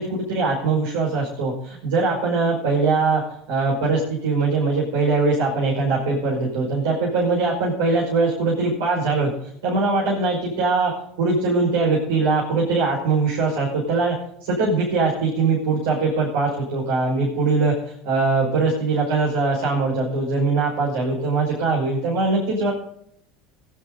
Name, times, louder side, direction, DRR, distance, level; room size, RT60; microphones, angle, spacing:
voice 1, 0.0-3.2 3.5-9.3 9.6-10.9 11.2-14.2 14.4-17.7 18.0-22.7, right 3 dB, 75° right, -5 dB, 5.7 m, -21 dB
19.5 x 10.5 x 4.1 m, 0.70 s
hypercardioid pair, 80°, 0 cm